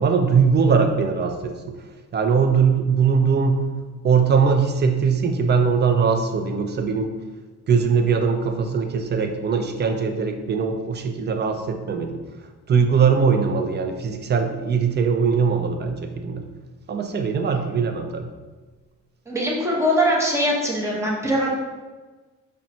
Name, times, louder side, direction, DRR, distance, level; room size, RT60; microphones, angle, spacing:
voice 1, 0.0-1.8 2.1-3.7 4.0-7.2 7.7-12.2 12.7-16.5 16.9-18.3, right 5 dB, 35° right, 6 dB, 0.4 m, -21 dB
voice 2, 19.3-21.5, equal, 10° right, -3 dB, 0.9 m, -22 dB
5.4 x 2.3 x 2.7 m, 1.3 s
cardioid pair, 90°, 30 cm